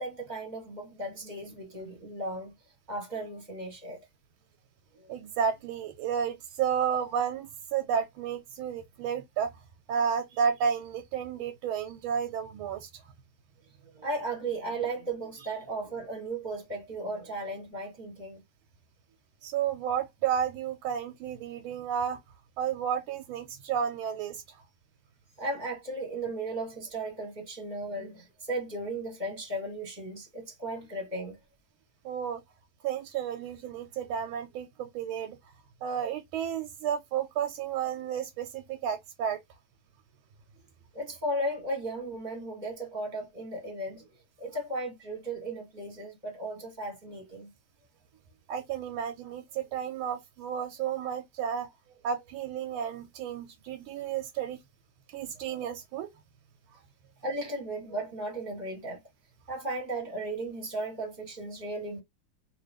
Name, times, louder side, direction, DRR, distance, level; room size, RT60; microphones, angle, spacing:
voice 1, 0.0-2.5 2.9-4.0 5.0-5.1 13.9-18.4 25.4-31.4 40.9-44.1 44.4-47.5 57.2-59.0 59.5-62.0, right 2 dB, 25° right, 1.2 m, -35 dB
voice 2, 5.1-9.5 9.9-12.9 19.4-22.2 22.6-24.6 32.0-32.4 32.8-35.4 35.8-39.4 48.5-51.7 52.0-54.6 55.1-56.1, right 8 dB, 90° right, 1.5 m, -32 dB
3.0 x 2.9 x 3.3 m
omnidirectional pair, 2.2 m